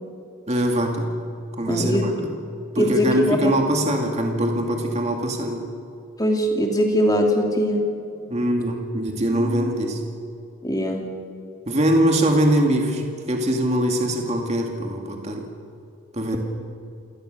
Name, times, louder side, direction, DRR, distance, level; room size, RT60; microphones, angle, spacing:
voice 1, 0.5-1.2 1.6-2.3 2.7-5.7 8.3-10.0 11.7-13.0 13.3-15.4 16.1-16.4, right 1 dB, 30° right, 2 dB, 2.4 m, -22 dB
voice 2, 1.7-2.0 2.8-3.5 6.2-7.9 10.6-11.1, equal, 15° left, 2 dB, 2.8 m, -21 dB
28.0 x 18.0 x 6.8 m, 2.6 s
head